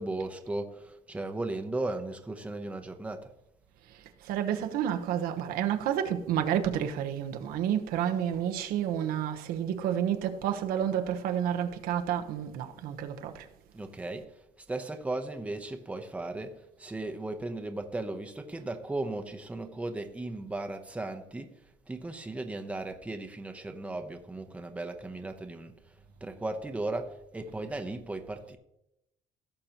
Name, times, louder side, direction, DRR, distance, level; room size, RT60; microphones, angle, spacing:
voice 1, 0.0-3.3 13.7-25.9 26.2-28.6, right 2 dB, 10° right, 0.8 m, -36 dB
voice 2, 3.9-13.5, right 9 dB, 85° right, 1.0 m, -30 dB
16.5 x 6.7 x 3.0 m
cardioid pair, 135°, 15 cm